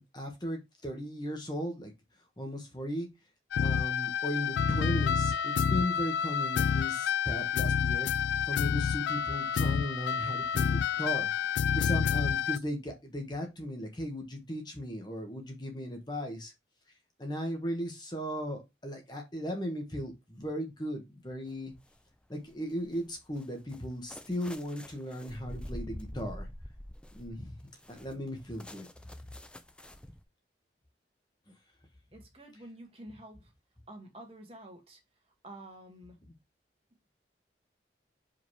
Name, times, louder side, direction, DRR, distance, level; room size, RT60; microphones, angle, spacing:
voice 1, 0.0-1.9 2.4-3.1 3.6-8.1 8.4-11.3 11.7-16.5 17.2-21.7 22.3-26.5 27.1-27.5 27.9-28.9, equal, 25° left, 1.3 m, -36 dB
sound 1, 3.5-12.6, left 7 dB, 80° left, 0.3 m, -29 dB
sound 2, 21.5-22.0 22.5-30.2, equal, 5° left, 0.4 m, -46 dB
voice 2, 32.1-33.5 33.9-35.0 35.3-36.2, right 1 dB, 30° right, 1.7 m, -49 dB
5.1 x 4.0 x 4.6 m
head